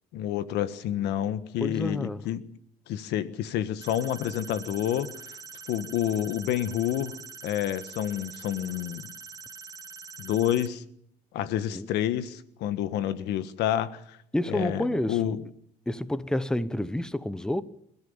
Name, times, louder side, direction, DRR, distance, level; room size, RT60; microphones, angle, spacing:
voice 1, 0.1-2.4 2.9-5.4 5.7-7.2 7.4-9.1 10.2-10.8 11.3-14.2 14.5-15.4, left 11 dB, 85° left, 1.5 m, -29 dB
voice 2, 1.6-2.2 11.7-11.9 14.3-15.4 15.9-17.6, left 1 dB, 5° left, 1.0 m, -29 dB
sound 1, 3.8-10.7, right 5 dB, 20° right, 2.0 m, -44 dB
26.5 x 14.5 x 7.3 m
cardioid pair, 110°, 17 cm